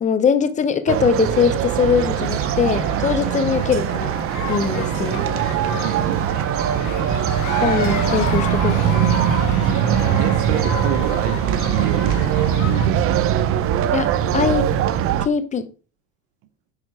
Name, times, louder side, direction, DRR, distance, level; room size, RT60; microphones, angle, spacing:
voice 1, 0.0-4.1 4.5-5.3 7.6-9.1 13.9-14.7 15.2-15.7, left 7 dB, 15° left, 0.7 m, -21 dB
sound 1, 0.9-15.3, right 9 dB, 30° right, 0.6 m, -21 dB
sound 2, 1.8-10.2, right 8 dB, 75° right, 1.4 m, -41 dB
sound 3, 1.9-12.9, left 8 dB, 40° left, 1.6 m, -33 dB
voice 2, 5.8-6.2 10.2-12.2 12.6-13.4, right 11 dB, 50° right, 1.0 m, -28 dB
9.8 x 4.3 x 4.9 m
supercardioid pair, 135°, 47 cm